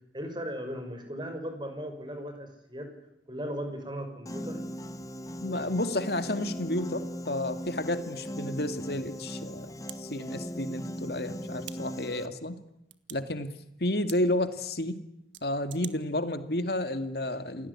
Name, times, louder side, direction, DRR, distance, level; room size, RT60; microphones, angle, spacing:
voice 1, 0.1-2.9 3.3-4.6, equal, 25° right, 6 dB, 6.1 m, -37 dB
Piano, 4.3-12.3, equal, 20° left, 1.3 m, -38 dB
voice 2, 5.4-12.6 13.1-13.5 13.8-15.0 15.4-17.7, left 1 dB, 60° left, 9 dB, 2.4 m, -31 dB
sound 1, 9.9-10.0 11.6-11.8 12.9-13.2 14.1-14.2 15.3-15.9, right 12 dB, 85° right, 1.7 m, -43 dB
28.5 x 18.5 x 9.9 m, 0.80 s
head